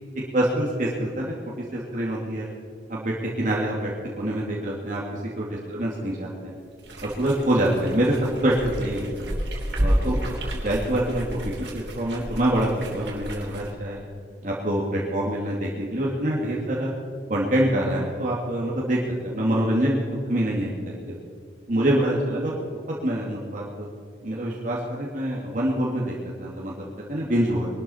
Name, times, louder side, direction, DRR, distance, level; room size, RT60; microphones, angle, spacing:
voice 1, 0.3-1.3 1.7-2.5 2.9-3.9 4.2-6.6 7.0-9.3 9.8-10.3 10.6-14.0 14.4-16.9 17.3-21.0 21.7-22.5 23.0-23.9 24.2-27.7, right 1 dB, 45° right, -5 dB, 2.2 m, -25 dB
sound 1, 6.8-13.7, equal, 80° right, 3.1 m, -30 dB
22.5 x 12.5 x 4.3 m, 2.2 s
head